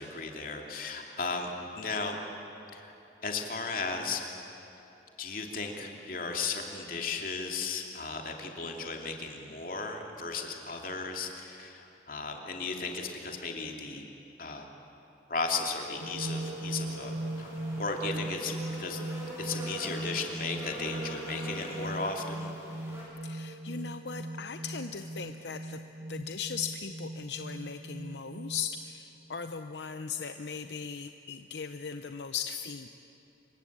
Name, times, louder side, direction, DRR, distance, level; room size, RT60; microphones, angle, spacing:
voice 1, 0.0-2.2 2.7-2.9 3.2-4.2 5.2-14.0 14.4-14.7 15.3-19.0 19.4-22.5, left 4 dB, 50° left, 2 dB, 2.9 m, -35 dB
sound 1, 16.0-23.0, equal, 15° right, 7.6 m, -44 dB
sound 2, 16.0-28.8, right 1 dB, 60° right, 1.2 m, -39 dB
voice 2, 23.2-25.8 26.1-32.9, left 6 dB, 80° left, 8 dB, 0.8 m, -38 dB
26.5 x 23.5 x 8.7 m, 2.9 s
head